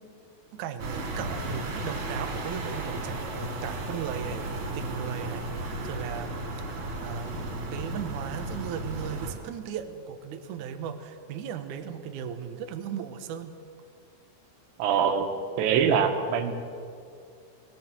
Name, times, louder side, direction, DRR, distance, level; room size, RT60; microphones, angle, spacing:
voice 1, 0.5-5.5 5.8-6.4 6.7-13.5, right 8 dB, 70° right, 7 dB, 2.0 m, -37 dB
sound 1, 0.8-9.3, right 2 dB, 50° right, 4.6 m, -34 dB
voice 2, 14.8-15.3 15.6-16.5, right 7 dB, 90° right, 6 dB, 3.6 m, -23 dB
20.0 x 18.5 x 7.5 m, 2.4 s
omnidirectional pair, 4.8 m